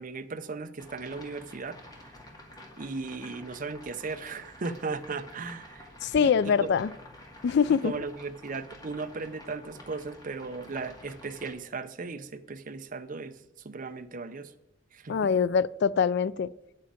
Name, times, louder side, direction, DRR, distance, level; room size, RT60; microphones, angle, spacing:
voice 1, 0.0-1.8 2.8-5.9 6.2-6.7 7.8-14.5 14.9-15.3, right 4 dB, 45° right, 0.6 m, -37 dB
sound 1, 0.8-11.5, left 1 dB, 20° left, 2.2 m, -50 dB
voice 2, 6.0-6.9 7.4-7.9 15.1-16.5, left 6 dB, 60° left, 0.3 m, -24 dB
10.0 x 7.6 x 5.0 m
head